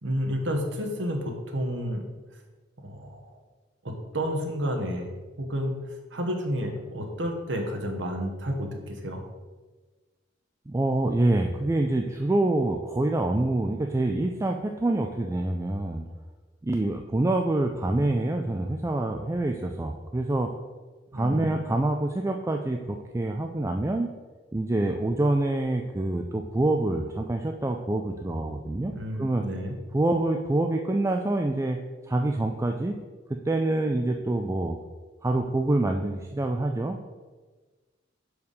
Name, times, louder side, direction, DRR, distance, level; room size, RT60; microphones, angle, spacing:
voice 1, 0.0-2.1 2.8-3.4 3.8-9.2 21.1-21.6 28.9-29.8, equal, 70° right, 3 dB, 1.3 m, -31 dB
voice 2, 10.7-16.0 16.6-20.5 21.1-24.1 24.5-29.4 29.9-31.8 32.1-33.0 33.3-34.8 35.2-37.0, right 2 dB, 15° right, 3 dB, 0.4 m, -26 dB
5.4 x 4.7 x 6.4 m, 1.3 s
head